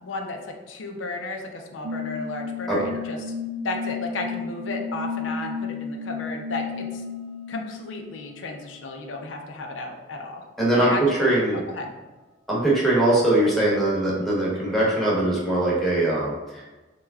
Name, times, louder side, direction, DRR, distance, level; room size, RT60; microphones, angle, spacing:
voice 1, 0.0-3.3 3.6-7.0 7.5-10.4 10.7-11.9, left 3 dB, 80° left, 3 dB, 0.5 m, -34 dB
sound 1, 1.8-8.9, left 4 dB, 90° right, 0.4 m, -33 dB
voice 2, 10.6-10.9 11.2-11.6 12.5-16.7, right 1 dB, ahead, -6 dB, 0.9 m, -21 dB
3.2 x 2.2 x 3.4 m, 1.2 s
head